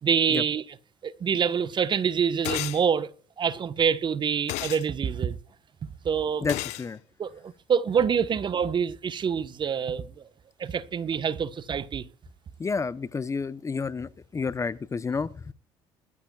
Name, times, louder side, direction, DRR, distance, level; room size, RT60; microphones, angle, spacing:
voice 1, 0.0-0.6 1.0-3.1 3.4-5.4 6.0-6.5 7.2-10.1 10.6-12.1, right 7 dB, 40° right, 1.1 m, -26 dB
sound 1, 2.4-2.8 4.5-4.8 6.5-6.9, left 17 dB, 75° left, 1.0 m, -31 dB
voice 2, 6.4-7.0 12.6-15.5, left 4 dB, 25° left, 0.7 m, -30 dB
21.0 x 13.5 x 2.4 m
supercardioid pair, 75°, 12 cm